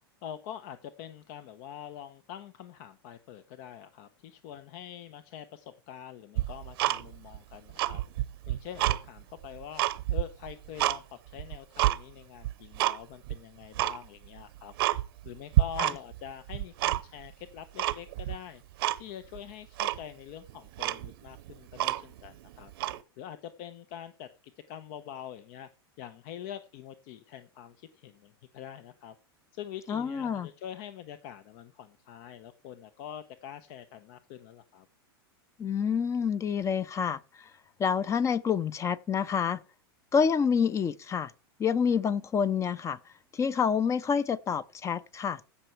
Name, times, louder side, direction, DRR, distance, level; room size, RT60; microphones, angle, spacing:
voice 1, 0.2-8.0 8.5-9.8 10.1-14.7 15.2-18.6 19.0-22.7 23.2-24.3 24.7-25.7 26.0-29.2 29.5-34.9, left 9 dB, 55° left, 0.9 m, -45 dB
Tick-tock, 6.4-7.4 7.7-9.0 9.4-11.0 11.4-12.0 12.4-13.0 13.3-13.4 13.7-14.0 14.4-14.5 14.8-15.3 15.5-16.2 16.5-17.3 17.8-18.4 18.8-19.0 19.3-19.4 19.8-20.0 20.5-20.6 20.8-22.3 22.7-23.0, right 16 dB, 65° right, 0.8 m, -28 dB
voice 2, 29.9-30.5 35.6-37.2 37.8-39.6 40.1-41.3 41.6-43.0 43.3-45.4, left 6 dB, 20° left, 0.7 m, -27 dB
16.0 x 5.8 x 4.6 m
hypercardioid pair, 120°, 13 cm